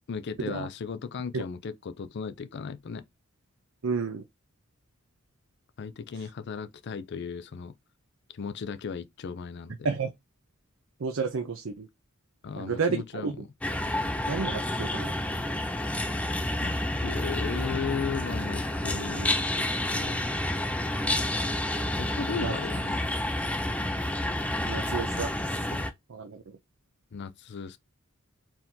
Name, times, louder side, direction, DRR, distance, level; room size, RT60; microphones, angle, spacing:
voice 1, 0.1-3.0 5.8-7.7 8.3-9.9 12.4-13.5 16.6-20.2 22.0-23.0 27.1-27.8, left 6 dB, 55° left, 0.4 m, -36 dB
voice 2, 3.8-4.2 9.8-10.1 11.0-11.9 12.6-13.3 14.3-15.1 22.4-22.5 24.6-25.3 25.7-25.8 26.1-26.4, right 5 dB, 70° right, 0.6 m, -31 dB
sound 1, 13.6-25.9, left 1 dB, 5° left, 0.5 m, -29 dB
4.5 x 3.7 x 2.7 m
head